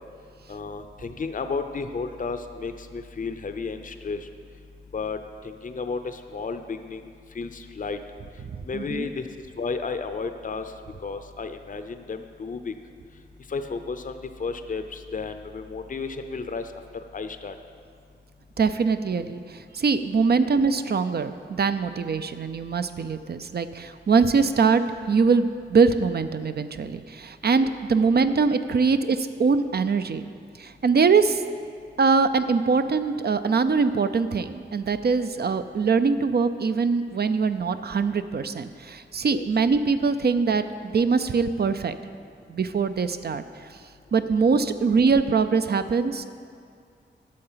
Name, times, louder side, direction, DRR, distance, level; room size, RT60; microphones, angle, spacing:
voice 1, 0.5-4.2 4.9-5.2 5.4-7.1 7.3-8.0 8.7-9.3 9.6-10.7 11.0-12.7 13.5-16.6 17.1-17.5 27.6-27.7 39.3-39.5, left 4 dB, 45° left, 8 dB, 0.6 m, -32 dB
voice 2, 8.7-9.1 18.6-24.8 25.1-30.2 30.6-31.4 32.0-42.0 42.5-43.4 44.1-46.2, right 5 dB, 55° right, 10 dB, 0.5 m, -23 dB
11.5 x 6.8 x 5.7 m, 2.2 s
cardioid pair, 60°, 19 cm